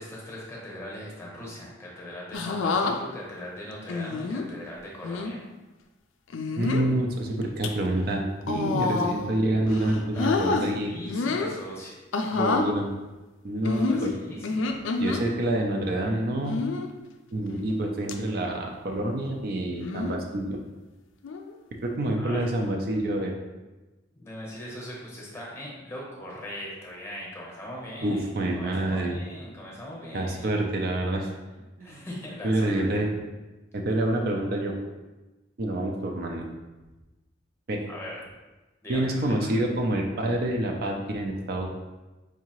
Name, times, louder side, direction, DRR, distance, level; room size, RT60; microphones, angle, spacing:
voice 1, 0.0-5.4 10.1-11.9 13.8-14.8 22.2-22.4 24.1-30.6 31.8-33.1 37.9-38.2 38.8-39.4, equal, 15° left, -4 dB, 0.8 m, -40 dB
sound 1, 2.3-2.9 3.9-4.4 5.0-5.3 6.3-6.9 7.4-7.7 8.4-9.3 9.7-10.6 11.1-11.6 12.1-12.7 13.6-15.2 16.4-16.9 17.5-17.8 18.1-18.2 19.8-20.2 21.2-21.5, left 3 dB, 80° left, 0.4 m, -28 dB
voice 2, 6.6-10.9 12.3-12.9 13.4-14.1 15.0-16.6 17.3-20.6 21.8-23.3 28.0-29.2 30.1-31.3 31.8-32.0 32.4-33.1 33.7-34.7 35.6-36.5 37.7-37.9 38.9-41.7, right 1 dB, 50° right, 1 dB, 0.4 m, -27 dB
4.7 x 2.7 x 2.9 m, 1.1 s
head